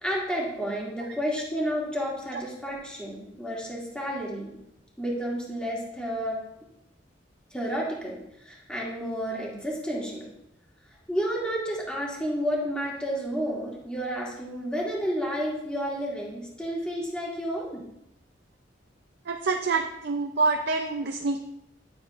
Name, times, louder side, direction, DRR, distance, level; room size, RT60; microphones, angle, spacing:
voice 1, 0.0-4.5 5.0-6.4 7.5-10.3 11.1-17.8, equal, 5° left, -5 dB, 2.4 m, -31 dB
voice 2, 19.3-21.4, right 3 dB, 65° right, 4 dB, 0.6 m, -26 dB
12.0 x 8.0 x 2.5 m, 0.81 s
head